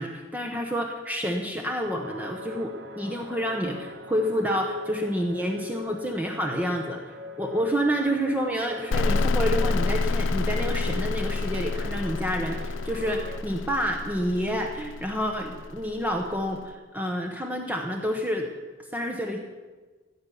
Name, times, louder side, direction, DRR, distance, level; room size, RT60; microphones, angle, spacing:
voice 1, 0.0-7.0 7.4-18.5 18.9-19.4, equal, 10° right, 2 dB, 0.9 m, -29 dB
sound 1, 1.8-13.4, left 2 dB, 60° right, 1.2 m, -41 dB
sound 2, 8.9-16.5, left 3 dB, 70° left, 0.4 m, -28 dB
14.5 x 9.6 x 7.0 m, 1.4 s
head